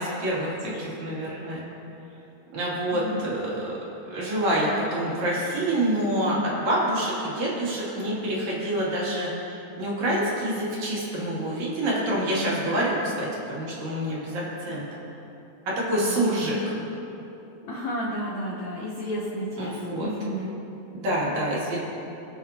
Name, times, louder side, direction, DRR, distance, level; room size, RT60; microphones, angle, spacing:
voice 1, 0.0-1.6 2.5-3.8 4.1-14.9 15.7-16.6 19.6-20.1 20.9-21.8, right 1 dB, 60° right, -7 dB, 3.9 m, -27 dB
voice 2, 2.9-3.3 16.0-16.2 16.5-16.6 17.6-20.6, equal, 70° left, -2 dB, 1.8 m, -32 dB
24.0 x 8.1 x 2.9 m, 3.0 s
omnidirectional pair, 4.0 m